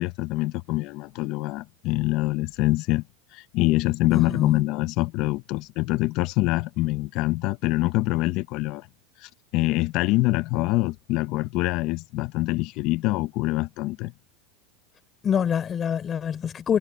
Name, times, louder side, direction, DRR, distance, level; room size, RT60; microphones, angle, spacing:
voice 1, 0.0-3.0 3.3-8.9 9.2-14.1, left 19 dB, 50° left, 0.9 m, -25 dB
voice 2, 4.1-4.6 15.2-16.8, left 8 dB, 25° left, 3.9 m, -25 dB
supercardioid pair, 125°, 0 cm